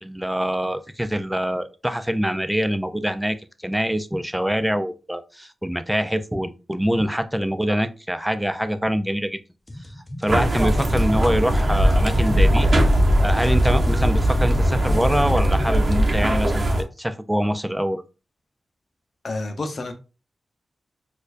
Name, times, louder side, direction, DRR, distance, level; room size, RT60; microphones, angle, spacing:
voice 1, 0.0-3.4 3.6-9.4 10.2-12.7 13.2-18.0, equal, 5° right, 11 dB, 0.4 m, -24 dB
sound 1, 9.7-16.0, left 1 dB, 25° left, 0.7 m, -35 dB
sound 2, 10.3-16.8, equal, 45° right, 0.9 m, -19 dB
voice 2, 19.2-19.9, left 2 dB, 55° left, 7 dB, 0.7 m, -29 dB
4.3 x 2.5 x 2.5 m, 0.31 s
cardioid pair, 55°, 0 cm